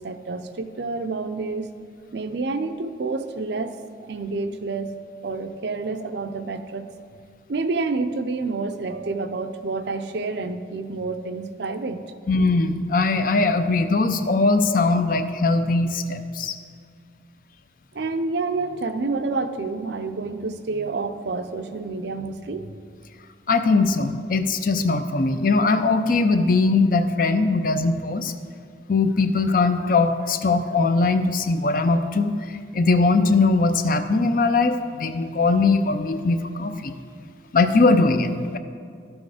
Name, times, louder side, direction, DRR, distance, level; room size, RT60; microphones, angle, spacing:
voice 1, 0.0-1.7 2.1-4.9 5.2-6.9 7.5-12.0 17.9-22.7, right 3 dB, 65° right, 9 dB, 0.5 m, -28 dB
voice 2, 12.3-16.5 23.5-28.3 28.9-37.0 37.5-38.6, left 3 dB, 45° left, 9 dB, 0.5 m, -20 dB
12.5 x 6.2 x 4.9 m, 2.2 s
head